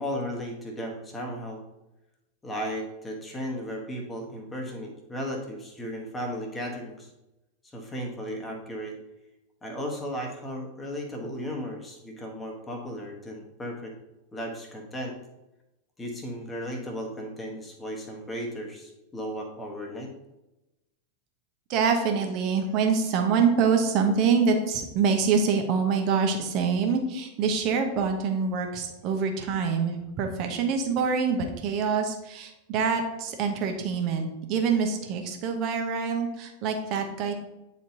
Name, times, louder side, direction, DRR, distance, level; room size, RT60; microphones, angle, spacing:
voice 1, 0.0-1.6 2.4-7.1 7.7-8.9 9.6-13.9 14.3-15.2 16.0-20.1, equal, 15° left, 1 dB, 1.2 m, -35 dB
voice 2, 21.7-37.3, right 5 dB, 40° right, 4 dB, 1.0 m, -25 dB
8.9 x 4.2 x 2.8 m, 0.97 s
figure-of-eight pair, 90°, 0 cm